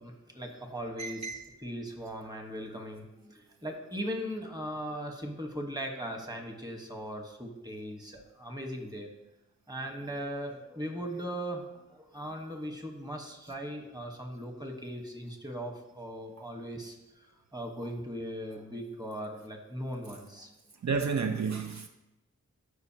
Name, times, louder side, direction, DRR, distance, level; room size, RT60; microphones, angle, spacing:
voice 1, 0.0-9.1 9.7-20.5, equal, 15° right, 1.3 m, -39 dB
voice 2, 1.0-1.4 20.8-21.9, right 5 dB, 65° right, 0.6 m, -31 dB
13.0 x 5.3 x 2.9 m
wide cardioid pair, 85°, 29 cm